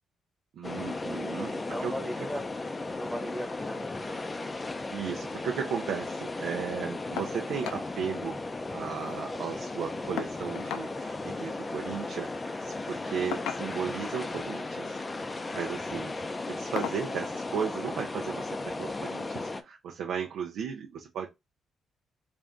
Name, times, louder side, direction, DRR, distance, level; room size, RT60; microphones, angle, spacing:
sound 1, 0.6-19.6, left 2 dB, 20° left, 0.5 m, -36 dB
voice 1, 0.6-1.6 1.8-2.0 4.9-8.4 8.7-15.0 15.5-16.2 16.4-21.3, right 7 dB, 75° right, 0.5 m, -35 dB
voice 2, 1.5-2.4 3.0-4.2, equal, ahead, 1.2 m, -38 dB
sound 2, 7.2-7.4 7.6-7.9 8.2-8.3 8.6-9.3 10.2-10.9 12.1-12.3 13.3-14.0 15.0-15.3 15.8-16.0 16.8-17.1 18.3-18.4 18.9-19.0, left 9 dB, 90° left, 0.4 m, -37 dB
3.3 x 2.6 x 3.6 m
cardioid pair, 90°, 0 cm